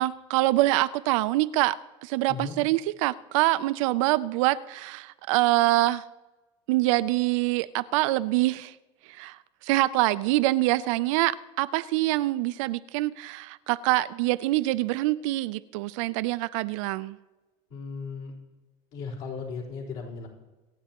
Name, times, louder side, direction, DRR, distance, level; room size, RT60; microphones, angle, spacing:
voice 1, 0.0-6.0 6.7-8.7 9.1-9.4 9.6-17.2, right 17 dB, 85° right, 15 dB, 0.5 m, -25 dB
voice 2, 17.7-18.3 18.9-20.3, left 4 dB, 65° left, -5 dB, 4.1 m, -36 dB
26.0 x 9.3 x 2.9 m, 1.2 s
cardioid pair, 145°, 16 cm